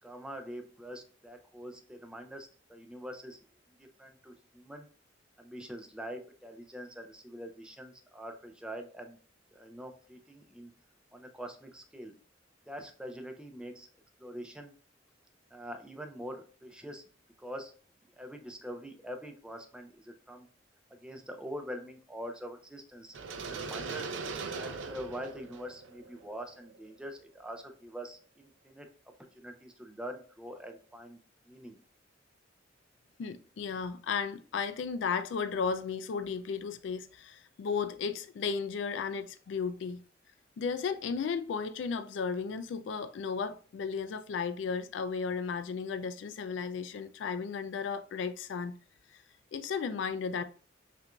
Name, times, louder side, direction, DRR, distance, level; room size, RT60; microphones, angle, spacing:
voice 1, 0.0-3.4 3.8-4.9 5.4-9.2 9.5-10.7 11.1-12.1 12.7-13.9 14.2-14.7 15.5-17.0 17.4-17.7 18.2-20.5 20.9-24.1 24.5-28.9 29.3-31.2 31.5-31.8, equal, 5° right, 0.6 m, -44 dB
sound 1, 23.1-27.1, right 4 dB, 85° right, 0.5 m, -40 dB
voice 2, 33.2-40.0 40.6-48.7 49.1-49.2 49.5-50.4, left 5 dB, 75° left, 0.3 m, -34 dB
5.7 x 2.6 x 2.2 m
head